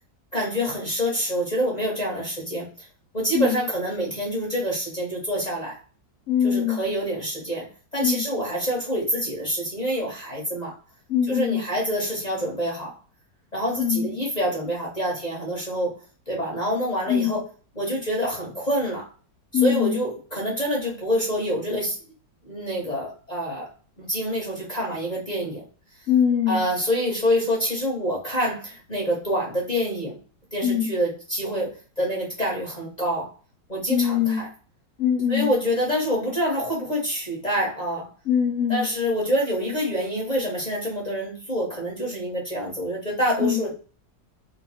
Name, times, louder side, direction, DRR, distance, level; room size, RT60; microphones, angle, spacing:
voice 1, 0.3-2.9 3.1-5.8 6.4-10.7 11.3-12.9 13.5-16.0 16.3-17.4 17.7-19.1 19.5-22.0 22.4-23.7 24.0-25.6 26.5-30.2 30.5-33.3 33.7-34.5 35.3-38.1 38.7-43.7, equal, 30° left, -3 dB, 0.9 m, -26 dB
voice 2, 6.3-6.8 8.0-8.2 11.1-11.6 13.8-14.1 17.1-17.3 19.5-20.0 26.1-26.6 30.6-30.9 33.9-34.4 35.0-35.5 38.3-38.9 43.4-43.6, left 8 dB, 70° left, 3 dB, 0.7 m, -22 dB
3.1 x 2.3 x 4.0 m, 0.38 s
omnidirectional pair, 1.9 m